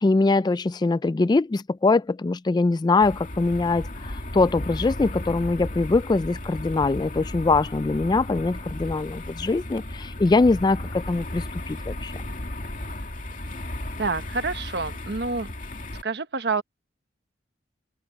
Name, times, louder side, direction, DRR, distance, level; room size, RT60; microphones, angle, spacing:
voice 1, 0.0-12.1, left 3 dB, 25° left, 0.3 m, -23 dB
sound 1, 3.0-16.0, left 1 dB, 50° left, 2.5 m, -35 dB
voice 2, 14.0-15.5 16.0-16.6, right 4 dB, 65° right, 1.2 m, -27 dB
head